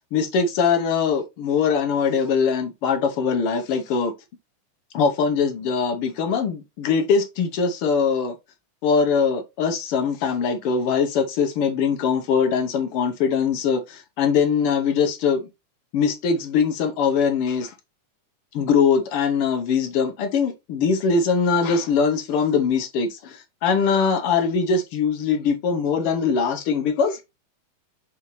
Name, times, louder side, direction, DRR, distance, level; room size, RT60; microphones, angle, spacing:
voice 1, 0.1-4.1 4.9-8.3 8.8-15.5 15.9-17.7 18.5-27.2, left 6 dB, 65° left, 1.5 m, -22 dB
5.6 x 5.5 x 3.1 m
omnidirectional pair, 3.4 m